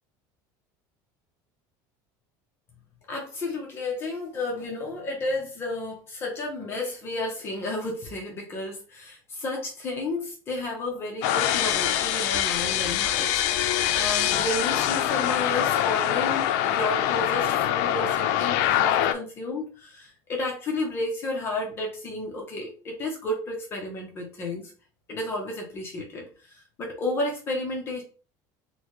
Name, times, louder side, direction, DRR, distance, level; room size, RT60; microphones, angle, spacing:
voice 1, 3.1-24.7 25.1-28.0, left 2 dB, 25° left, -1 dB, 0.8 m, -32 dB
sound 1, 11.2-19.1, left 11 dB, 70° left, 0.4 m, -24 dB
4.1 x 2.2 x 3.0 m, 0.37 s
cardioid pair, 170°, 9 cm